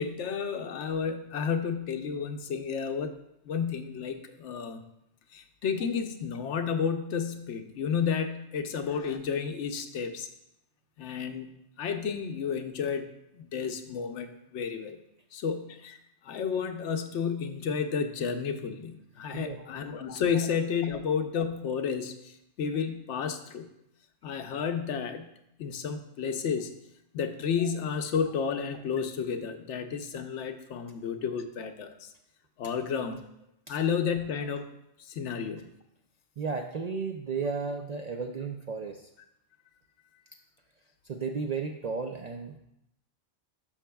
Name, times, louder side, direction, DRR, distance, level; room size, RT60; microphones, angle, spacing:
voice 1, 0.0-3.2 3.4-4.8 5.3-10.3 11.0-11.5 11.8-15.0 15.3-16.0 16.2-23.7 24.2-25.3 25.6-26.7 27.1-32.1 32.6-33.2 33.7-34.7 35.1-35.7, left 6 dB, 80° left, 7 dB, 1.0 m, -31 dB
voice 2, 19.3-19.7 27.6-27.7 33.7-33.8 36.4-39.1 41.1-42.6, right 5 dB, 60° right, 3 dB, 0.4 m, -34 dB
12.0 x 5.6 x 2.3 m, 0.82 s
omnidirectional pair, 1.2 m